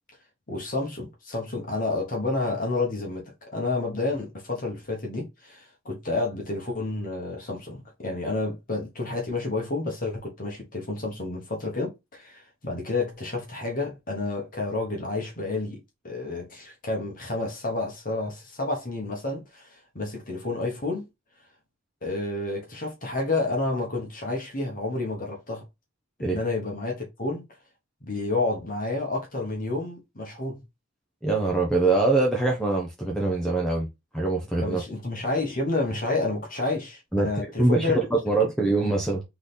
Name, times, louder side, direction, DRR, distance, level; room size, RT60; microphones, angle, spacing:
voice 1, 0.5-15.8 16.0-21.1 22.0-25.6 26.2-27.4 28.0-30.6 34.6-38.0, left 2 dB, 40° left, 1.4 m, -30 dB
voice 2, 31.2-33.9 34.1-34.8 37.1-39.2, right 3 dB, 5° left, 0.9 m, -23 dB
3.9 x 3.4 x 4.0 m
head